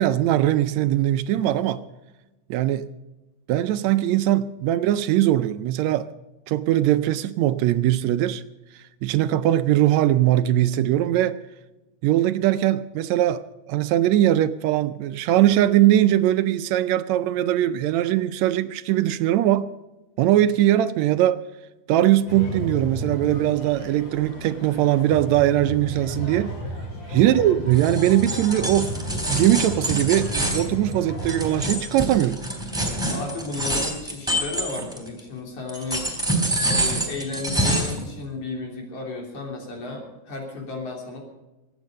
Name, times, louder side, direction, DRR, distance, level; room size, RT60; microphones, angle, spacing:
voice 1, 0.0-1.8 2.5-2.9 3.5-6.1 6.5-8.4 9.0-11.4 12.0-19.7 20.2-21.4 21.9-26.5 27.1-28.9 29.3-32.4, right 13 dB, 80° right, 1.8 m, -20 dB
Amusement Park (Ambience), 22.3-31.6, equal, 40° left, 3.6 m, -33 dB
sound 1, 27.7-35.2 35.7-38.0, right 1 dB, ahead, 3.3 m, -26 dB
voice 2, 33.1-36.1 36.7-41.2, left 3 dB, 75° left, 4.6 m, -33 dB
23.0 x 9.3 x 5.3 m
omnidirectional pair, 3.4 m